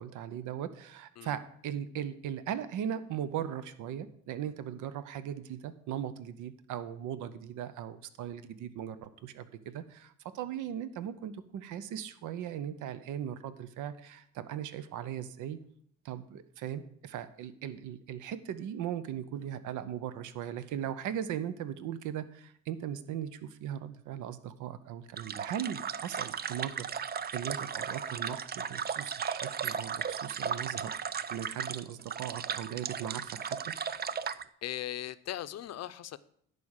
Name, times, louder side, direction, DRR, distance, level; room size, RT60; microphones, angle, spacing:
voice 1, 0.0-15.6 16.0-26.9 27.3-31.0 31.3-33.8, right 10 dB, 85° right, 13 dB, 0.7 m, -38 dB
sound 1, 25.2-34.4, right 7 dB, 35° right, 0.4 m, -36 dB
voice 2, 34.6-36.2, left 12 dB, 60° left, 14 dB, 0.6 m, -38 dB
11.0 x 5.0 x 6.5 m, 0.66 s
cardioid pair, 90°, 30 cm